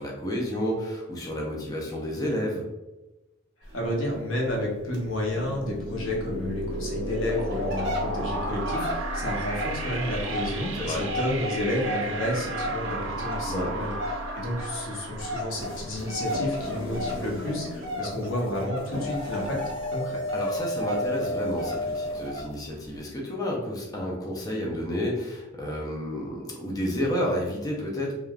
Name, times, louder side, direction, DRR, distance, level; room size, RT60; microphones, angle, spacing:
voice 1, 0.0-2.6 10.7-11.0 13.4-13.7 20.3-28.1, equal, 20° left, -2 dB, 0.4 m, -30 dB
voice 2, 3.6-20.2, left 1 dB, 80° left, -2 dB, 0.8 m, -31 dB
sound 1, 3.6-4.1 4.4-4.6 4.9-5.0 5.4-5.5 6.0-6.1 6.7-6.8 7.2-20.0 20.3-22.5 22.9-23.0, equal, 65° right, 1.0 m, -35 dB
sound 2, 5.3-16.7, right 1 dB, 80° right, 0.5 m, -34 dB
sound 3, 15.5-22.3, left 1 dB, 65° left, 1.4 m, -33 dB
3.2 x 2.3 x 2.3 m, 1.0 s
head